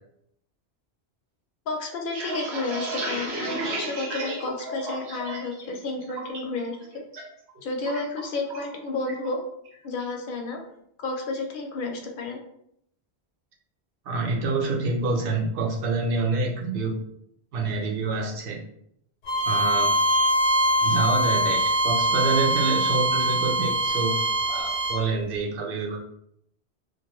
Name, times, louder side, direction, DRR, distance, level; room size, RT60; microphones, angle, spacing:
voice 1, 1.7-6.8 7.6-9.4 9.8-10.6 11.0-12.4, left 3 dB, 60° left, 2 dB, 0.7 m, -31 dB
sound 1, 1.9-5.6 5.9-6.4 6.8-7.2 7.5-8.7 9.1-9.3 9.7-10.1, right 2 dB, 80° right, 1.0 m, -33 dB
voice 2, 14.1-17.0 17.5-18.6 19.5-19.9 20.8-24.1 24.5-26.0, right 3 dB, 60° right, 0 dB, 0.7 m, -27 dB
Bowed string instrument, 19.3-25.0, right 1 dB, 90° left, 0.9 m, -23 dB
2.4 x 2.2 x 2.9 m, 0.73 s
omnidirectional pair, 1.1 m